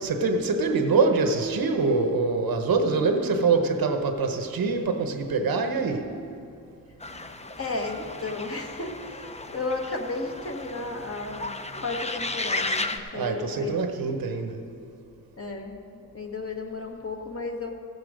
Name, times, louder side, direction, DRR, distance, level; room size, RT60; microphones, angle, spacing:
voice 1, 0.0-6.1 13.1-14.6, right 4 dB, 85° right, 5 dB, 1.0 m, -24 dB
sound 1, 7.0-13.0, left 2 dB, 20° left, 0.6 m, -34 dB
voice 2, 7.6-13.8 15.4-17.7, left 3 dB, 40° left, 2 dB, 1.5 m, -34 dB
15.5 x 8.0 x 5.0 m, 2.5 s
cardioid pair, 70°, 35 cm